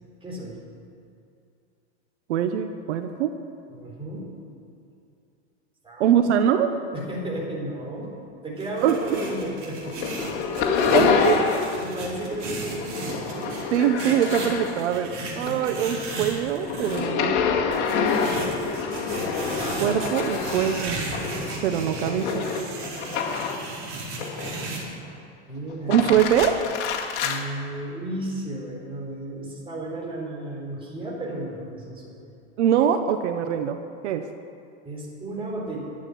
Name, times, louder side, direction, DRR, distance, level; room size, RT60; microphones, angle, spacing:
voice 1, 0.2-0.6 3.7-4.3 5.8-6.3 6.9-10.1 10.9-11.3 11.7-13.6 15.4-15.7 19.8-19.9 25.5-26.2 27.2-32.2 34.8-35.9, right 1 dB, 15° right, -3 dB, 4.0 m, -34 dB
voice 2, 2.3-3.4 6.0-6.7 8.8-9.0 10.9-11.5 13.7-17.4 19.8-21.0 21.6-22.5 25.9-26.6 32.6-33.8 34.0-34.3, right 9 dB, 75° right, 8 dB, 1.0 m, -23 dB
sound 1, 8.6-17.0 17.7-24.8, right 3 dB, 35° right, 4.3 m, -35 dB
sound 2, 8.8-9.6 9.8-11.9 12.1-15.0 15.4-23.7 24.2-24.9 25.7-27.4, left 6 dB, 55° left, 2.2 m, -27 dB
12.0 x 8.9 x 9.8 m, 2.6 s
supercardioid pair, 135°, 34 cm